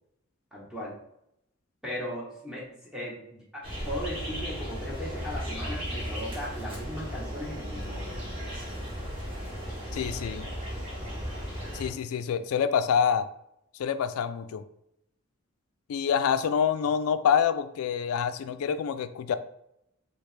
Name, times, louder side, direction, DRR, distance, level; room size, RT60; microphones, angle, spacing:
voice 1, 0.5-0.9 1.8-8.2, equal, 5° right, -5 dB, 1.0 m, -37 dB
sound 1, 3.6-11.9, equal, 25° right, 1.1 m, -35 dB
voice 2, 9.9-10.5 11.7-13.3 13.7-14.6 15.9-19.3, left 7 dB, 90° left, 12 dB, 0.3 m, -26 dB
3.1 x 2.9 x 3.2 m, 0.78 s
head